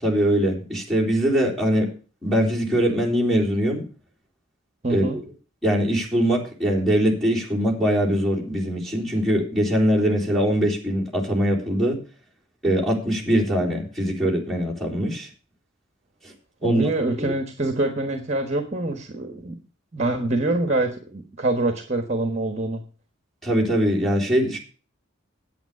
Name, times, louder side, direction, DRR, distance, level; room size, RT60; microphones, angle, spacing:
voice 1, 0.0-1.9 2.2-3.8 4.9-5.0 5.6-12.0 12.6-15.3 16.2-16.3 16.6-16.9 17.2-17.4 23.4-24.6, equal, ahead, -6 dB, 3.8 m, -22 dB
voice 2, 4.8-5.2 16.6-19.6 19.9-22.8, right 2 dB, 35° right, 7 dB, 1.3 m, -25 dB
9.2 x 8.6 x 6.8 m, 0.37 s
head